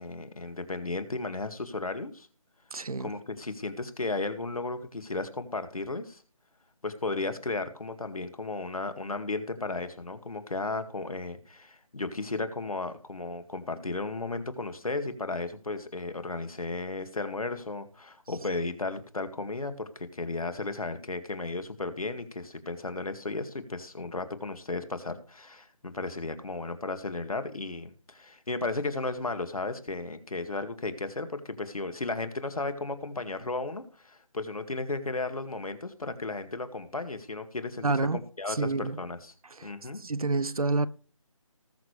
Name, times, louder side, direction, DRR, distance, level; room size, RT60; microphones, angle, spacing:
voice 1, 0.0-2.3 3.0-6.2 6.8-37.9 38.1-39.3 39.6-40.0, left 3 dB, 90° left, 2.1 m, -34 dB
voice 2, 2.7-3.1 37.8-38.2 38.5-39.0 39.5-39.7 40.0-40.9, right 3 dB, 90° right, 0.9 m, -28 dB
19.5 x 7.0 x 3.3 m
figure-of-eight pair, 165°, 18 cm